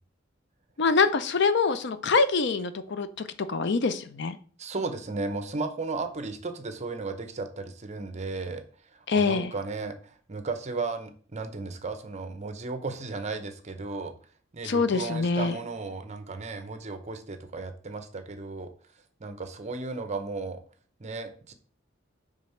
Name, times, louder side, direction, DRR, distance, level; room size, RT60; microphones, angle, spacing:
voice 1, 0.8-4.4 9.1-9.5 14.6-15.6, left 4 dB, 60° left, 12 dB, 0.6 m, -25 dB
voice 2, 4.6-8.6 9.1-14.1 14.5-18.7 19.2-20.6 21.0-21.5, right 3 dB, 35° right, 9 dB, 0.8 m, -35 dB
5.2 x 3.5 x 5.6 m, 0.42 s
head